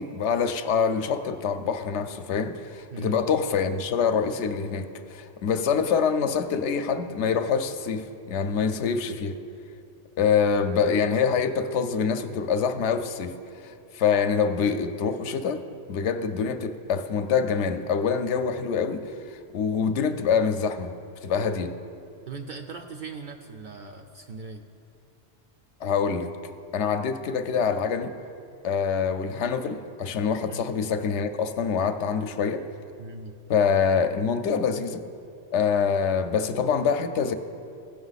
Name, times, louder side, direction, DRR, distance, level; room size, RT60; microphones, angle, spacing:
voice 1, 0.0-9.4 10.2-20.9 21.2-21.8 25.8-26.3 26.7-28.2 28.6-32.7 33.5-35.0 35.5-37.3, left 6 dB, 75° left, 9 dB, 0.9 m, -25 dB
voice 2, 2.9-3.2 22.3-24.6 30.5-30.7 33.0-33.3, right 4 dB, 60° right, 4 dB, 0.5 m, -39 dB
16.0 x 5.4 x 4.0 m, 2.6 s
omnidirectional pair, 1.2 m